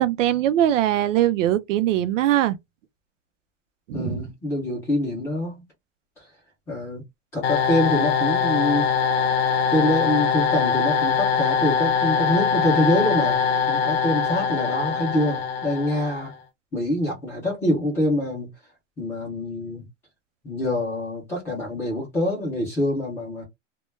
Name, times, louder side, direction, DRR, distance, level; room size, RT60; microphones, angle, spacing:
voice 1, 0.0-2.6 3.9-4.3, right 12 dB, 85° right, 0.5 m, -21 dB
voice 2, 3.9-5.6 6.7-7.0 7.3-8.9 9.7-16.4 16.7-18.5 19.0-19.8 20.4-23.4, left 1 dB, 5° left, 0.5 m, -25 dB
sound 1, 7.4-16.3, left 6 dB, 55° left, 0.6 m, -23 dB
2.2 x 2.2 x 3.0 m
supercardioid pair, 175°, 37 cm